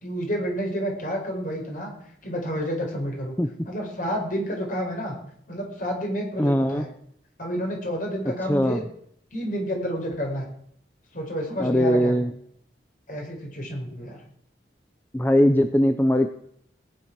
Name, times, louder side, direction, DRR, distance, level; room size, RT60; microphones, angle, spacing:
voice 1, 0.0-1.9 2.2-3.3 3.6-5.1 5.5-6.9 7.4-8.8 9.3-10.5 11.1-12.1 13.1-14.2, equal, 50° left, 1 dB, 4.9 m, -29 dB
voice 2, 6.4-6.9 8.5-8.8 11.6-12.3 15.1-16.3, equal, 10° left, 7 dB, 0.7 m, -20 dB
18.0 x 10.0 x 6.1 m, 0.69 s
head